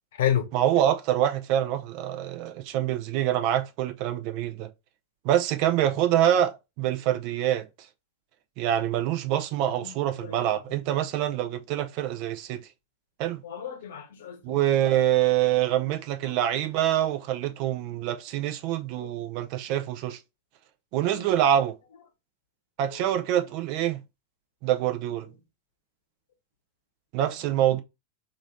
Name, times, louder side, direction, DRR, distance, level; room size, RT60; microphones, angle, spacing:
voice 1, 0.5-4.7 5.2-7.7 8.6-12.7 13.2-13.4 14.4-20.2 20.9-21.7 22.8-24.0 24.6-25.3 27.1-27.8, right 11 dB, 45° right, 0.5 m, -25 dB
voice 2, 9.8-10.4 13.4-14.6 19.0-19.1, left 10 dB, 60° left, 0.9 m, -30 dB
3.0 x 2.6 x 3.7 m
figure-of-eight pair, 90°, 0 cm